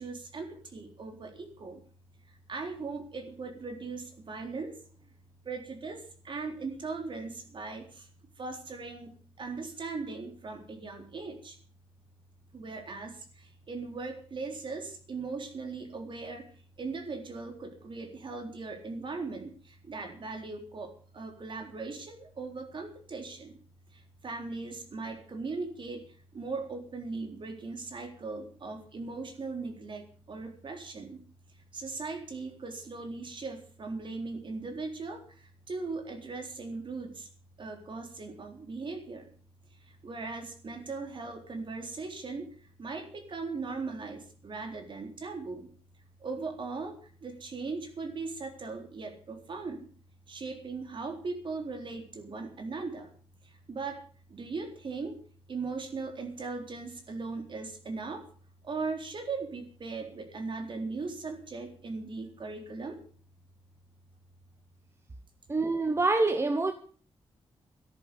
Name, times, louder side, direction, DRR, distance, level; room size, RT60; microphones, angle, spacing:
voice 1, 0.0-1.8 2.5-4.8 5.4-8.1 8.4-11.6 12.5-16.5 16.8-23.5 23.9-26.1 26.3-31.2 31.7-37.3 37.6-39.3 39.9-42.5 42.8-45.7 46.2-46.9 47.2-49.9 50.3-53.1 53.7-54.0 54.3-55.2 55.5-58.3 58.6-63.0, right 4 dB, 50° right, 3.8 m, -39 dB
voice 2, 65.5-66.7, right 3 dB, 25° right, 1.1 m, -26 dB
14.0 x 11.0 x 7.0 m
wide cardioid pair, 115°, 10 cm